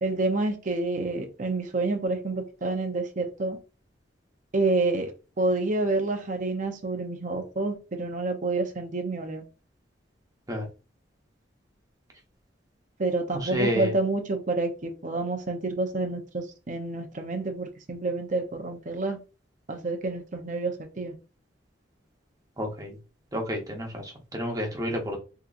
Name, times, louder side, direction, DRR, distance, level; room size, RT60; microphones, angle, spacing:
voice 1, 0.0-3.6 4.5-5.1 5.4-9.4 13.0-19.2 19.7-21.1, right 2 dB, 45° right, 0.6 m, -28 dB
voice 2, 13.3-13.9 22.6-23.0 23.3-25.2, equal, 20° right, 0.9 m, -30 dB
3.7 x 2.8 x 2.4 m
head